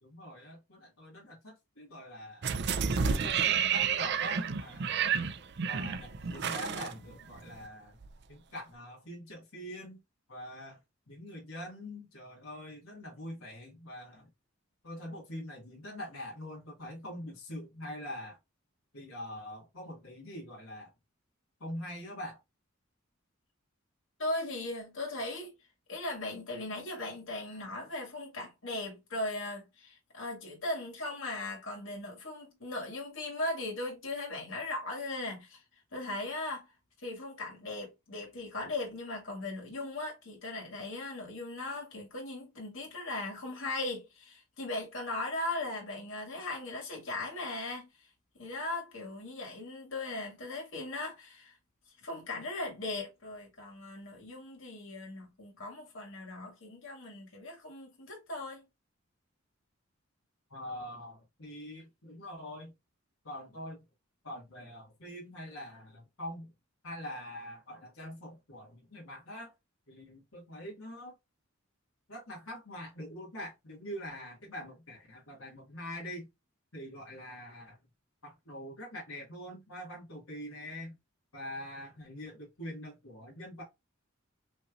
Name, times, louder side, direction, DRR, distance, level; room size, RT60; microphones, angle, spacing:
voice 1, 0.0-2.5 3.0-5.1 5.7-8.0 8.3-10.0 10.3-10.8 11.1-14.3 14.8-18.4 18.9-20.9 21.6-22.4 60.5-62.7 63.2-63.8 64.2-66.5 66.8-69.5 69.9-71.1 72.1-76.3 76.7-77.8 78.2-81.0 81.3-83.6, left 1 dB, 90° left, 1.8 m, -44 dB
sound 1, 2.4-7.7 8.0-8.1, right 7 dB, 55° right, 0.5 m, -30 dB
voice 2, 24.2-25.5 25.9-35.6 35.9-36.7 37.0-48.1 48.3-51.5 52.0-58.7, left 2 dB, 65° left, 2.1 m, -38 dB
5.2 x 3.2 x 2.5 m
head